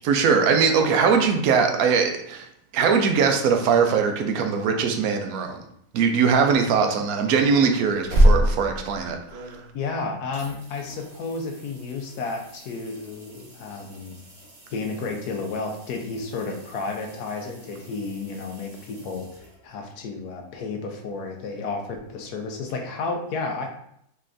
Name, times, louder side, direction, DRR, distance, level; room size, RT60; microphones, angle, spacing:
voice 1, 0.0-2.5 2.7-5.6 5.9-9.6, right 6 dB, 75° right, 5 dB, 1.0 m, -21 dB
sound 1, 7.8-10.0 10.3-19.9 22.7-22.8, equal, 40° right, 0.8 m, -28 dB
voice 2, 9.7-14.2 14.7-19.3 19.6-23.7, left 4 dB, 85° left, 3 dB, 1.2 m, -32 dB
3.9 x 3.3 x 2.5 m, 0.71 s
omnidirectional pair, 1.6 m